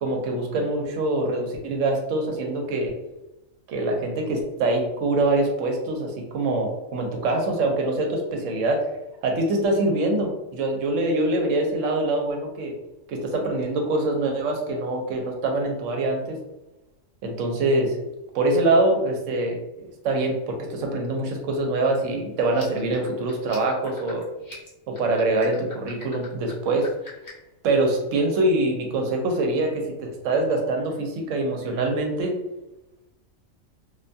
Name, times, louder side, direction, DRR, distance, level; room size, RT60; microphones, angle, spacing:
voice 1, 0.0-2.9 3.7-8.9 9.2-12.7 13.1-16.4 17.2-18.0 18.3-24.2 24.9-26.9 27.6-32.3, right 2 dB, 75° right, 2 dB, 0.9 m, -24 dB
sound 1, 22.5-27.5, left 2 dB, 25° left, 0.4 m, -46 dB
2.4 x 2.2 x 2.6 m, 0.99 s
omnidirectional pair, 1.4 m